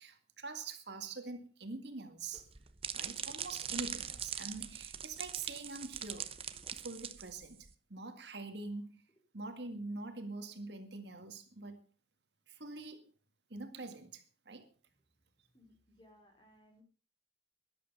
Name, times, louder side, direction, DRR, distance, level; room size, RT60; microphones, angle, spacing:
voice 1, 0.0-2.4 2.9-6.3 6.8-8.9 9.3-11.8 12.5-13.1 13.5-14.7, right 3 dB, 65° right, 7 dB, 2.0 m, -44 dB
sound 1, 2.3-7.7, right 8 dB, 30° right, 0.8 m, -42 dB
voice 2, 15.5-16.8, left 1 dB, 25° left, 4 dB, 4.0 m, -64 dB
13.5 x 11.5 x 5.5 m, 0.38 s
head